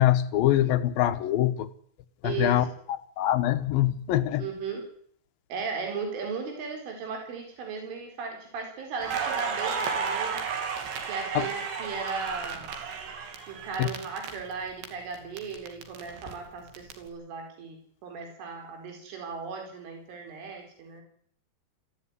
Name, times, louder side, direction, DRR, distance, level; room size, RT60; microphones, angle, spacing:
voice 1, 0.0-1.7 2.2-2.6 3.2-4.4 11.4-11.5 13.8-13.9, left 13 dB, 75° left, 11 dB, 2.1 m, -23 dB
voice 2, 2.2-2.7 4.4-4.8 5.5-10.4 11.1-12.7 13.5-21.0, right 5 dB, 85° right, 3 dB, 6.8 m, -36 dB
Crackle, 9.0-14.9 15.1-16.9, right 6 dB, 65° right, 5.0 m, -33 dB
23.0 x 15.5 x 9.7 m, 0.63 s
omnidirectional pair, 5.5 m